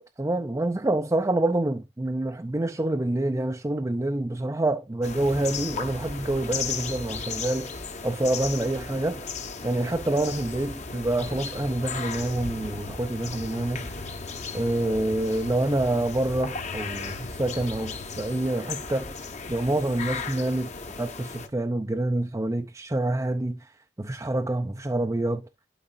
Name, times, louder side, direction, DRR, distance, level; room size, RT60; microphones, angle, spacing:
voice 1, 0.0-7.7 8.0-9.3 9.6-13.9 14.5-19.1 19.5-20.7 21.0-23.6 24.0-25.4, right 1 dB, 20° right, 0.5 m, -27 dB
sound 1, 5.0-21.5, left 4 dB, 40° left, 1.1 m, -36 dB
sound 2, 11.6-18.4, left 4 dB, 70° left, 0.6 m, -44 dB
12.0 x 4.9 x 2.5 m
head